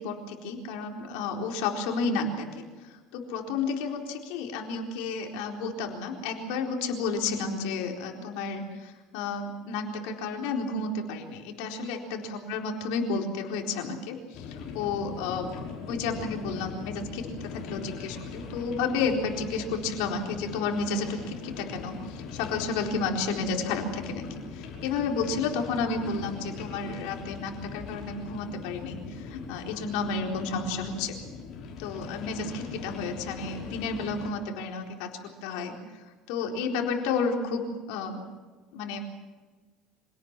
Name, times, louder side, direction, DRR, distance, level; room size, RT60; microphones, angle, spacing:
voice 1, 0.0-15.5 15.9-24.3 24.5-31.1 31.8-35.1 35.4-35.7 36.3-38.2 38.7-39.0, left 4 dB, 80° left, 2 dB, 4.2 m, -31 dB
sound 1, 14.3-34.3, left 5 dB, 50° left, 5.8 m, -40 dB
26.0 x 18.0 x 7.6 m, 1.3 s
cardioid pair, 140°, 0 cm